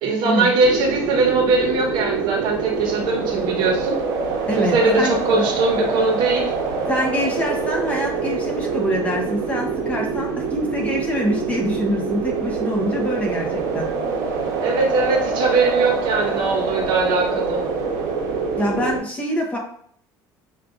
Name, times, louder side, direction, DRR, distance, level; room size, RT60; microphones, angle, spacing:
voice 1, 0.0-4.0 4.6-6.5 14.6-17.6, right 3 dB, 65° right, 1 dB, 1.0 m, -20 dB
sound 1, 0.6-19.0, right 5 dB, 85° right, 1.0 m, -25 dB
voice 2, 4.5-5.1 6.9-13.9 18.6-19.6, equal, 15° left, 0 dB, 0.9 m, -25 dB
6.2 x 2.5 x 2.5 m, 0.62 s
cardioid pair, 140°, 9 cm